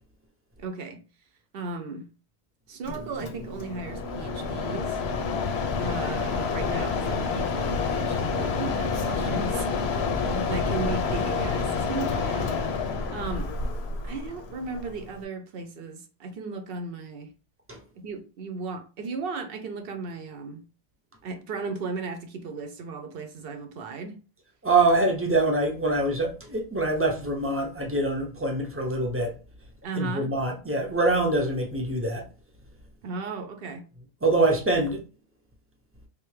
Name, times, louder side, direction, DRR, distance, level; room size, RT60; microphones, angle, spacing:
voice 1, 0.6-1.0 1.5-2.1 2.7-5.0 5.8-9.9 10.3-12.6 13.1-13.5 14.0-17.3 18.0-20.6 21.2-24.2 29.8-30.3 33.0-33.9, right 4 dB, 65° right, 0.8 m, -35 dB
Mechanisms, 2.8-15.2, left 4 dB, 80° left, 0.8 m, -28 dB
voice 2, 24.6-29.3 30.0-32.2 34.2-35.0, right 2 dB, 15° right, 0.6 m, -24 dB
3.5 x 2.6 x 3.2 m
omnidirectional pair, 1.1 m